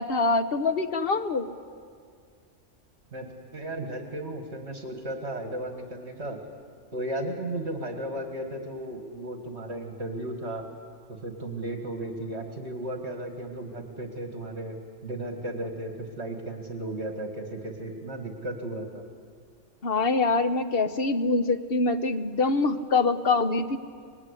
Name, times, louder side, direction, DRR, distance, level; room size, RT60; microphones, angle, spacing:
voice 1, 0.0-1.5 19.8-23.8, left 3 dB, 50° left, 9 dB, 1.2 m, -24 dB
voice 2, 3.1-6.4 6.9-10.6 11.1-14.8 15.0-19.0, right 1 dB, 60° right, 3 dB, 2.3 m, -35 dB
25.0 x 21.0 x 9.8 m, 2.1 s
omnidirectional pair, 1.3 m